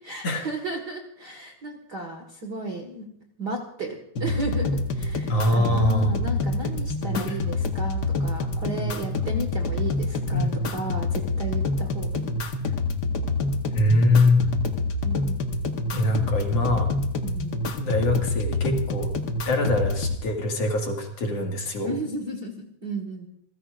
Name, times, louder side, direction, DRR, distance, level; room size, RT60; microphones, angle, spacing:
voice 1, 0.0-3.0 3.4-12.4 15.0-15.5 17.2-17.6 21.8-23.3, right 2 dB, 40° right, 3 dB, 1.7 m, -34 dB
sound 1, 4.1-20.2, left 3 dB, 65° left, 1.0 m, -27 dB
voice 2, 5.3-6.2 7.2-7.4 10.3-10.5 13.7-14.5 15.9-16.9 17.8-19.1 19.4-21.9, left 2 dB, 50° left, 1 dB, 2.9 m, -23 dB
28.5 x 15.5 x 2.5 m, 0.71 s
omnidirectional pair, 3.8 m